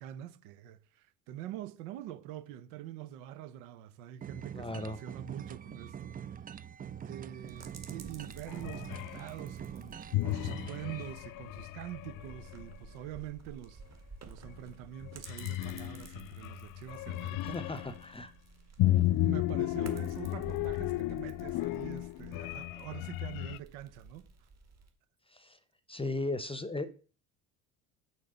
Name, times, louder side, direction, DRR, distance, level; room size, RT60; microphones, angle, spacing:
voice 1, 0.0-6.5 7.0-13.8 14.2-17.6 19.1-24.5, right 12 dB, 80° right, 0.8 m, -45 dB
sound 1, 4.2-11.1, right 8 dB, 25° right, 0.4 m, -44 dB
voice 2, 4.5-5.0 17.5-18.3 25.3-25.6 25.9-26.9, left 2 dB, 15° left, 0.8 m, -36 dB
sound 2, 7.5-24.9, right 4 dB, 40° right, 1.9 m, -53 dB
sound 3, 8.5-9.3 10.1-12.8 14.4-14.7 15.0-18.0 18.8-23.6, left 15 dB, 55° left, 0.5 m, -34 dB
6.5 x 4.4 x 6.7 m
hypercardioid pair, 70°, 40 cm